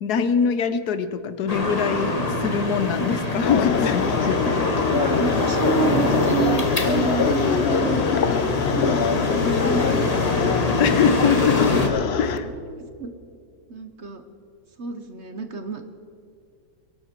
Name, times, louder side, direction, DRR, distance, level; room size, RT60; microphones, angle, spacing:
voice 1, 0.0-4.7 10.7-11.8 12.2-12.5, left 6 dB, 75° left, 12 dB, 1.4 m, -23 dB
sound 1, 1.5-11.9, left 2 dB, 25° left, 1.5 m, -25 dB
sound 2, 3.4-12.4, left 6 dB, 55° left, 0.8 m, -24 dB
voice 2, 4.9-8.1 8.7-11.0 12.6-13.1 13.7-14.2 14.8-15.9, right 5 dB, 45° right, 7 dB, 1.2 m, -29 dB
23.0 x 12.0 x 4.5 m, 2.4 s
omnidirectional pair, 1.8 m